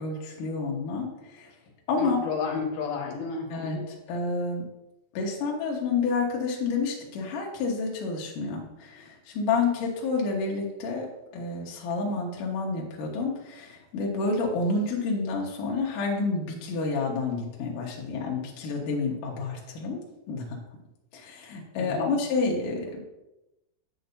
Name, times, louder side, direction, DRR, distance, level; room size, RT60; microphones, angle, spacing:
voice 1, 0.0-1.5 1.9-2.2 3.5-3.8 4.1-4.7 5.1-11.1 11.3-20.0 20.3-20.6 21.1-23.0, left 4 dB, 80° left, -2 dB, 1.9 m, -29 dB
voice 2, 2.0-3.9 21.8-22.1, left 5 dB, 65° left, 0 dB, 2.7 m, -32 dB
10.0 x 8.7 x 2.7 m, 0.93 s
omnidirectional pair, 6.0 m